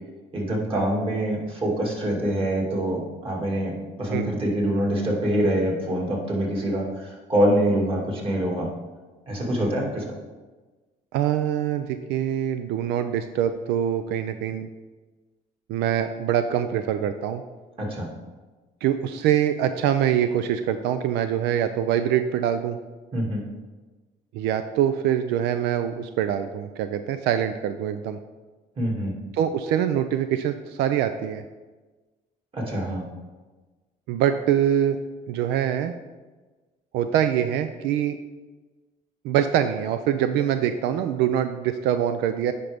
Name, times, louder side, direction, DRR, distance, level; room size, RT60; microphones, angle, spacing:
voice 1, 0.3-3.7 4.0-8.7 9.3-10.1 17.8-18.1 23.1-23.4 28.8-29.1 32.5-33.0, right 1 dB, 30° right, -2 dB, 2.2 m, -25 dB
voice 2, 11.1-14.7 15.7-17.4 18.8-22.8 24.3-28.2 29.3-31.4 34.1-35.0 35.3-35.9 36.9-38.2 39.2-42.5, right 10 dB, 90° right, 9 dB, 0.4 m, -24 dB
9.8 x 5.2 x 3.5 m, 1.3 s
cardioid pair, 110°, 17 cm